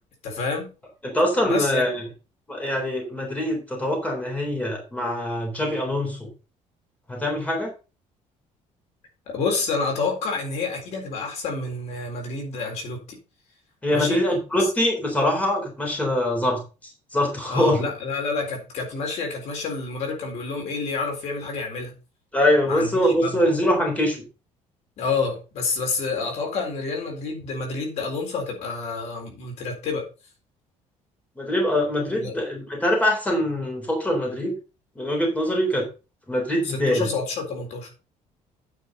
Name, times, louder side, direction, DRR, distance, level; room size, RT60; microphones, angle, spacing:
voice 1, 0.2-0.7 1.4-1.9 9.3-13.2 13.9-14.2 17.5-22.0 22.7-23.4 25.0-30.0 32.1-32.3 36.6-37.9, left 4 dB, 60° left, 3.9 m, -28 dB
voice 2, 1.0-1.9 2.5-6.3 7.1-7.7 13.8-16.6 17.1-17.9 22.3-24.2 31.4-34.5 35.0-35.8 36.3-37.1, left 1 dB, 10° left, 3.8 m, -23 dB
9.3 x 6.1 x 5.4 m
cardioid pair, 170°, 13 cm